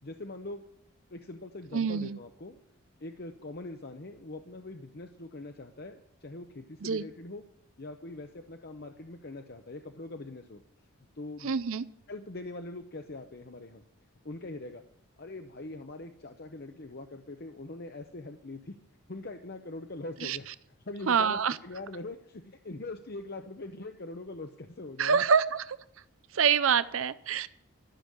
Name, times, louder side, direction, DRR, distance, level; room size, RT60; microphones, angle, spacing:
voice 1, 0.0-0.6 1.1-2.6 3.0-7.4 7.8-10.6 11.2-11.5 12.1-13.8 14.2-14.8 15.2-18.8 19.1-20.5 20.9-25.2, left 2 dB, 45° left, 6 dB, 0.7 m, -42 dB
voice 2, 1.7-2.2 6.8-7.0 11.4-11.8 20.2-20.4 21.1-21.6 25.0-25.8 26.3-27.5, right 6 dB, 65° right, 15 dB, 0.5 m, -26 dB
13.0 x 7.0 x 9.6 m, 0.73 s
head